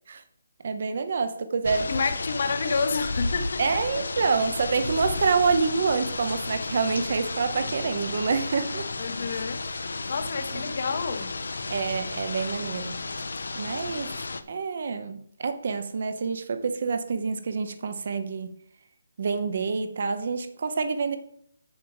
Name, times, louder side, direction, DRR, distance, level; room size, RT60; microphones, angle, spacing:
voice 1, 0.6-1.9 3.6-8.9 10.5-10.6 11.7-13.0 13.5-14.2 14.5-18.6 19.2-21.2, right 5 dB, 40° right, 0.9 m, -27 dB
sound 1, 1.6-14.4, left 3 dB, 70° left, 0.9 m, -33 dB
voice 2, 1.9-3.6 9.0-9.7 10.1-11.4, left 4 dB, 35° left, 1.0 m, -29 dB
7.8 x 7.4 x 4.8 m
hypercardioid pair, 175°, 0 cm